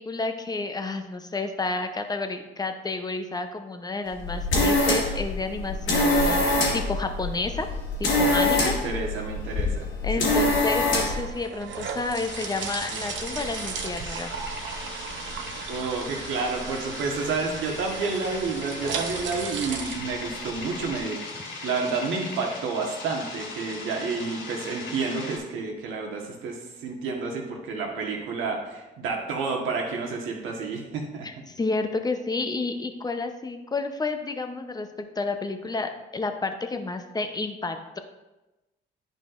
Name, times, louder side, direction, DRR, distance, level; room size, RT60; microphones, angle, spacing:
voice 1, 0.0-7.7 8.0-8.8 9.7-9.8 10.0-14.3 31.2-38.0, left 3 dB, 20° left, 6 dB, 0.7 m, -30 dB
sound 1, 4.1-11.3, left 2 dB, 90° left, 1.8 m, -24 dB
voice 2, 8.6-9.9 10.2-10.5 15.7-21.2 21.6-31.3, right 4 dB, 90° right, 1 dB, 1.4 m, -30 dB
sound 2, 10.6-21.0, right 6 dB, 70° right, 0.7 m, -36 dB
sound 3, 12.3-25.4, left 3 dB, 70° left, 2.0 m, -39 dB
10.5 x 5.3 x 2.5 m, 1.1 s
cardioid pair, 90°, 20 cm